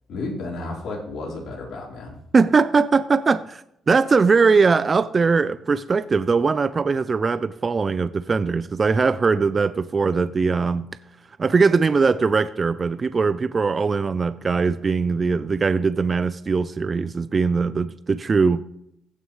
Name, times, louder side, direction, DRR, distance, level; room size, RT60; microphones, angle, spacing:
voice 1, 0.1-2.2, left 2 dB, 70° left, -2 dB, 4.0 m, -32 dB
voice 2, 2.3-10.9 11.4-18.6, right 4 dB, 35° right, 14 dB, 0.4 m, -20 dB
16.0 x 6.3 x 3.2 m, 0.78 s
cardioid pair, 90°, 0 cm